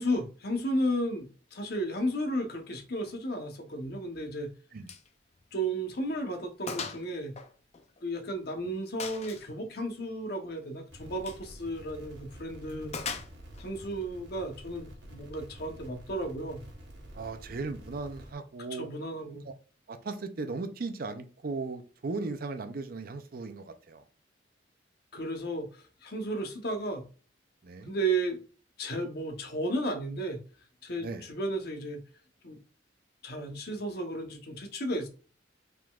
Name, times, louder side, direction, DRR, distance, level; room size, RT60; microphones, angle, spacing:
voice 1, 0.0-4.5 5.5-7.3 8.0-12.9 13.6-16.6 18.7-19.5 25.1-27.0 27.9-28.4 28.8-30.4 30.8-32.0 32.4-32.6 33.2-35.1, right 1 dB, 55° left, 0.9 m, -33 dB
Gunshot gunfire, 4.9-5.1 5.4-5.5 6.0-6.1 6.7-7.0 7.4-8.3 9.0-9.5 11.1-11.5 12.9-13.7, left 5 dB, 35° left, 0.5 m, -38 dB
sound 1, 10.9-18.3, equal, 65° right, 1.3 m, -49 dB
voice 2, 17.1-18.9 19.5-19.6 19.9-24.0 27.6-27.9 31.0-31.3, right 3 dB, 50° right, 0.5 m, -37 dB
4.7 x 3.8 x 2.3 m
head